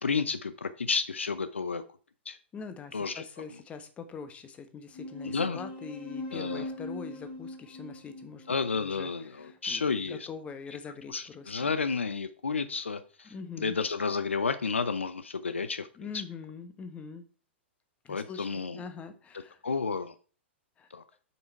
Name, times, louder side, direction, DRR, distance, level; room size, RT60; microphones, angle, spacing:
voice 1, 0.0-1.8 2.3-2.4 2.9-3.2 5.2-5.6 6.3-6.7 8.5-10.3 11.1-15.9 16.1-16.2 18.1-18.8 19.6-20.1 20.9-21.0, left 5 dB, 80° left, 13 dB, 0.6 m, -31 dB
voice 2, 2.5-8.5 8.7-11.7 13.2-13.8 15.9-17.3 18.0-19.6 20.8-20.9, left 5 dB, 20° left, 9 dB, 1.2 m, -43 dB
sound 1, 4.9-9.9, left 2 dB, 45° left, 3.6 m, -41 dB
7.3 x 5.9 x 4.5 m, 0.39 s
figure-of-eight pair, 105°, 6 cm